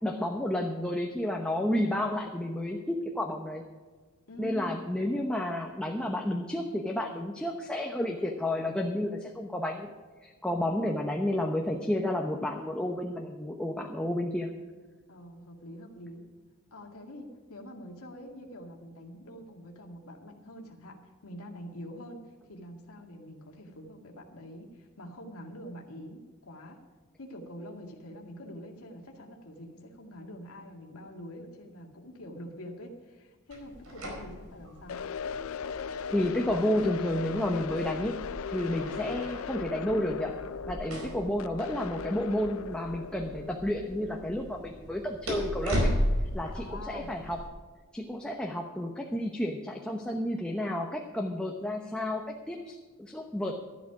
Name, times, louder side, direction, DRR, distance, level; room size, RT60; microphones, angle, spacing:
voice 1, 0.0-3.6 4.4-9.9 10.2-14.5 36.1-38.2 38.5-40.3 40.7-45.9 46.3-47.4 47.9-53.6, left 1 dB, 5° left, 1 dB, 0.9 m, -31 dB
voice 2, 4.3-4.8 15.1-16.2 16.7-22.2 22.5-26.8 27.2-35.0 46.5-47.1, equal, 90° left, 1 dB, 2.1 m, -45 dB
sound 1, 33.5-47.5, equal, 90° right, 4.8 m, -36 dB
sound 2, 34.9-44.9, left 6 dB, 70° left, 0.4 m, -38 dB
13.0 x 12.0 x 4.9 m, 1.4 s
head